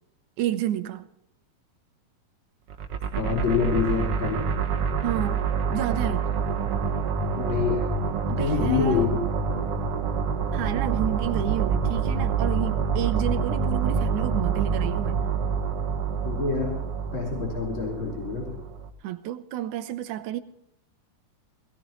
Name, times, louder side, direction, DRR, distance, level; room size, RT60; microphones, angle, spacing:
voice 1, 0.4-1.1 5.0-5.4 5.7-6.2 8.3-9.1 10.5-15.2 19.0-20.4, right 12 dB, 75° right, 1.9 m, -30 dB
sound 1, 2.7-18.9, right 5 dB, 60° right, 1.6 m, -27 dB
voice 2, 3.2-4.5 7.4-8.0 8.4-9.2 9.5-9.7 16.2-16.8 17.1-18.6, left 6 dB, 50° left, 4.6 m, -27 dB
20.5 x 17.5 x 3.1 m
omnidirectional pair, 4.2 m